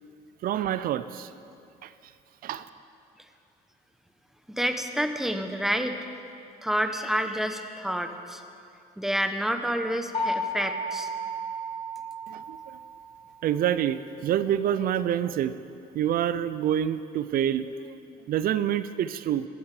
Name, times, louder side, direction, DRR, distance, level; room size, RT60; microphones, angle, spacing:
voice 1, 0.4-1.3 1.8-1.9 2.4-2.7 12.3-12.8 13.4-15.5 15.9-18.0 18.3-19.5, right 10 dB, 60° right, 14 dB, 0.5 m, -27 dB
voice 2, 4.5-5.9 6.6-8.4 9.0-11.1, equal, ahead, 7 dB, 0.9 m, -28 dB
sound 1, 10.1-12.9, equal, 35° left, 4.0 m, -32 dB
16.0 x 12.0 x 4.9 m, 2.5 s
cardioid pair, 110°, 17 cm